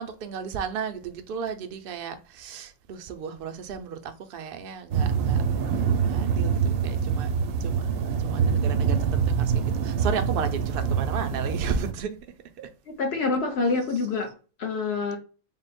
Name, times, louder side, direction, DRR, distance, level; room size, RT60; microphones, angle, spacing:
voice 1, 0.0-5.4 5.7-7.3 7.6-7.9 8.2-12.2 12.6-12.7 13.9-14.1, right 6 dB, 60° right, 0.6 m, -34 dB
sound 1, 4.9-11.9, right 6 dB, 80° right, 1.0 m, -25 dB
voice 2, 13.0-14.3 14.6-15.2, left 4 dB, 55° left, 1.0 m, -26 dB
3.7 x 2.1 x 4.0 m
omnidirectional pair, 1.3 m